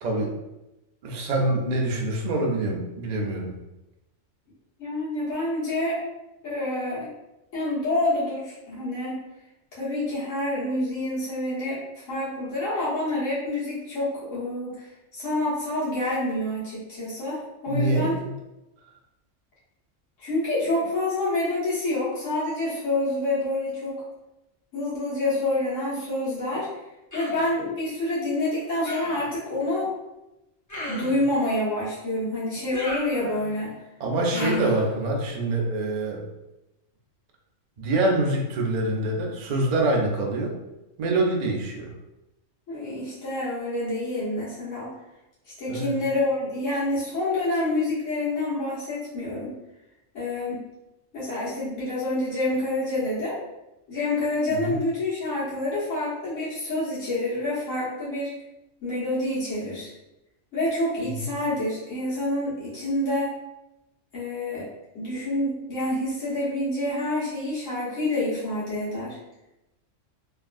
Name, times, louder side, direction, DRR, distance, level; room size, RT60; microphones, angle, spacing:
voice 1, 0.0-0.4 1.0-3.5 17.7-18.3 34.0-36.3 37.8-40.6 41.0-41.9 45.7-45.9 54.5-54.8 61.0-61.3, right 2 dB, 60° right, 0 dB, 0.4 m, -25 dB
voice 2, 4.8-6.0 6.4-7.1 7.5-9.2 9.7-18.1 20.2-24.0 24.7-26.7 27.1-29.9 30.9-33.7 34.3-34.8 42.7-44.9 45.6-49.5 50.1-50.6 51.1-53.4 53.9-58.3 58.8-59.9 60.5-63.3 64.1-64.6 64.9-69.2, left 1 dB, 75° left, -9 dB, 1.6 m, -27 dB
Human voice, 27.1-27.5 28.8-29.3 30.7-31.3 32.7-33.6 34.3-34.9, left 1 dB, 25° left, 0.4 m, -35 dB
3.4 x 2.4 x 2.4 m, 0.94 s
omnidirectional pair, 1.3 m